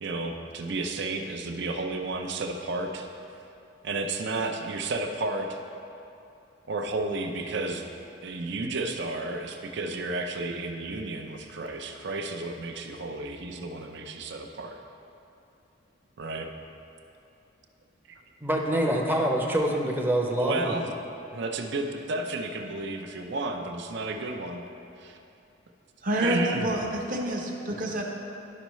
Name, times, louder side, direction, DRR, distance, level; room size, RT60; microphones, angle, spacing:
voice 1, 0.0-3.1 3.8-5.6 6.7-7.8 8.2-14.8 16.2-16.5 18.1-18.2 20.4-20.9 21.3-24.6 25.0-25.2 26.2-26.8, right 2 dB, 65° right, 4 dB, 0.6 m, -32 dB
voice 2, 18.4-20.8, right 1 dB, 10° right, 0 dB, 0.6 m, -25 dB
voice 3, 26.0-28.0, right 1 dB, 45° right, 0 dB, 0.9 m, -28 dB
11.5 x 5.4 x 3.1 m, 2.7 s
head